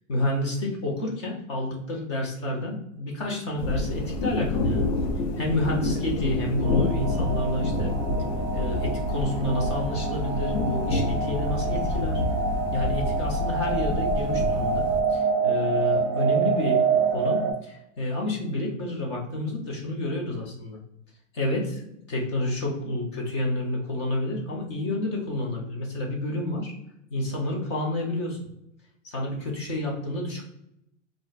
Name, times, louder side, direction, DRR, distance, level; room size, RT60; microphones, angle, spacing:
voice 1, 0.1-4.9 5.4-8.0 8.5-12.2 12.7-16.8 17.1-20.8 21.3-21.8 22.1-26.7 27.1-28.4 29.0-30.5, left 1 dB, 25° left, -1 dB, 0.3 m, -29 dB
sound 1, 3.6-15.0, left 2 dB, 70° left, 0.7 m, -28 dB
sound 2, 6.6-17.5, right 5 dB, 35° right, 0.5 m, -27 dB
2.4 x 2.1 x 3.8 m, 0.79 s
supercardioid pair, 155°, 39 cm